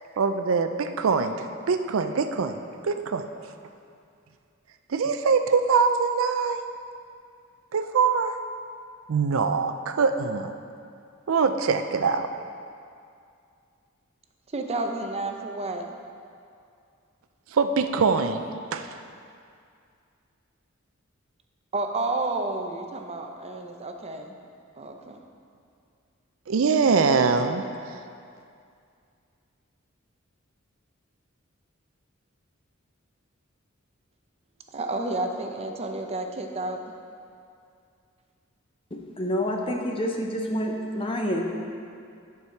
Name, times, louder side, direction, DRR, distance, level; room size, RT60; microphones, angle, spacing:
voice 1, 0.2-1.4 1.7-2.6 2.8-3.2 4.9-6.6 7.7-8.4 9.1-10.5 11.3-12.3 17.5-18.4 18.7-18.9 26.5-27.6, right 5 dB, 75° right, 8 dB, 0.4 m, -23 dB
voice 2, 14.5-15.8 21.7-24.4 24.7-25.2 34.7-36.8, right 2 dB, 30° right, 4 dB, 0.6 m, -30 dB
voice 3, 38.9-41.5, equal, 25° left, 1 dB, 0.8 m, -28 dB
9.6 x 4.8 x 5.7 m, 2.4 s
head